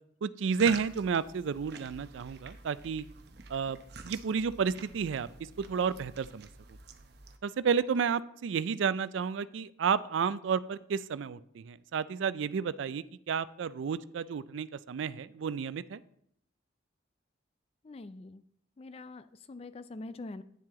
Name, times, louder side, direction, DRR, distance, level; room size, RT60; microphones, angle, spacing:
voice 1, 0.2-3.1 3.5-5.3 5.6-6.5 7.4-16.0, right 6 dB, 75° right, 17 dB, 0.4 m, -31 dB
sound 1, 0.5-7.4, right 4 dB, 55° right, 0.7 m, -47 dB
voice 2, 17.8-18.4 18.8-20.4, left 2 dB, 30° left, 14 dB, 0.3 m, -44 dB
9.2 x 7.4 x 3.7 m, 0.71 s
head